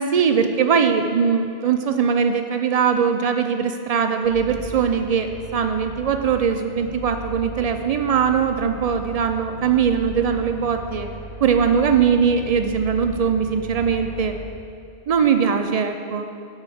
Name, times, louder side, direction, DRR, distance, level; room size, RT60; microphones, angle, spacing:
voice 1, 0.0-11.1 11.4-14.3 15.1-16.2, right 6 dB, 70° right, 6 dB, 0.3 m, -21 dB
sound 1, 4.2-14.4, equal, 90° left, 1.8 m, -37 dB
12.0 x 4.6 x 4.9 m, 2.5 s
omnidirectional pair, 1.2 m